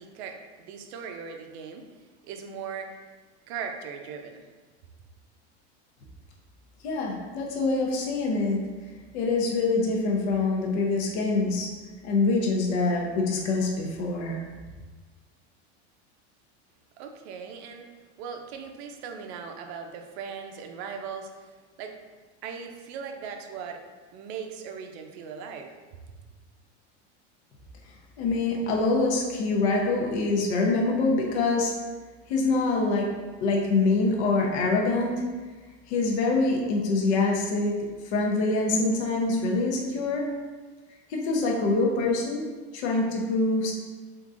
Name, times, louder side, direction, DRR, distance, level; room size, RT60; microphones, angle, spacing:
voice 1, 0.0-1.8 2.2-3.0 3.5-4.5 17.0-17.9 18.2-21.5 21.8-22.0 22.4-23.8 24.1-25.7, right 6 dB, 65° right, 4 dB, 0.5 m, -39 dB
voice 2, 6.8-8.6 9.1-11.7 12.0-14.4 28.2-31.7 32.3-33.1 33.4-35.2 35.9-37.8 38.0-40.3 41.1-42.4 42.7-43.7, left 3 dB, 75° left, -1 dB, 0.8 m, -25 dB
3.7 x 2.6 x 2.4 m, 1.4 s
supercardioid pair, 155°, 34 cm